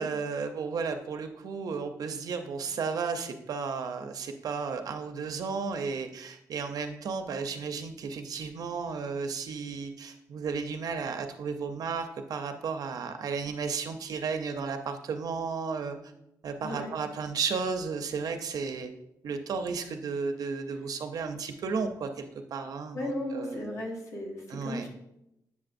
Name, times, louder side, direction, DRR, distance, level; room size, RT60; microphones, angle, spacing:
voice 1, 0.0-16.0 16.4-18.9 19.2-23.7 24.5-24.8, right 5 dB, 60° right, 6 dB, 0.5 m, -33 dB
voice 2, 22.9-24.9, left 1 dB, 45° left, -2 dB, 1.3 m, -35 dB
8.2 x 6.7 x 2.5 m, 0.84 s
wide cardioid pair, 175°, 7 cm